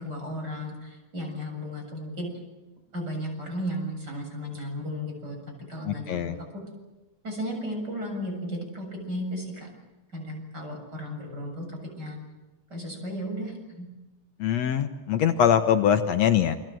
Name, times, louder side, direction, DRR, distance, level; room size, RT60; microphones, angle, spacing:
voice 1, 0.0-2.3 2.9-5.4 5.7-6.6 7.2-9.7 10.1-11.7 12.0-12.2 12.7-13.9, equal, 35° right, 2 dB, 7.9 m, -34 dB
voice 2, 5.8-6.4 14.4-16.6, left 9 dB, 70° left, 8 dB, 2.2 m, -23 dB
29.0 x 24.0 x 7.8 m, 1.1 s
omnidirectional pair, 3.4 m